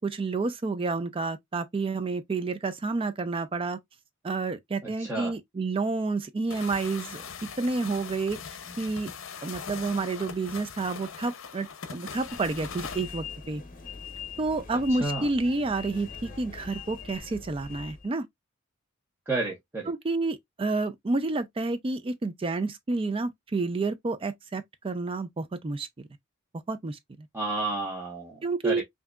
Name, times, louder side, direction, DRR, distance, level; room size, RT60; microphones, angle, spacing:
voice 1, 0.0-3.8 4.2-9.1 9.4-13.6 14.4-18.3 19.9-26.1 26.7-27.3 28.4-28.8, right 3 dB, 25° right, 0.4 m, -30 dB
voice 2, 5.0-5.3 15.0-15.3 19.3-19.9 27.3-28.8, right 3 dB, 10° right, 1.1 m, -31 dB
sound 1, 6.5-13.1, left 6 dB, 70° left, 0.7 m, -41 dB
sound 2, 12.1-18.1, left 6 dB, 40° left, 0.9 m, -42 dB
5.7 x 2.7 x 2.3 m
head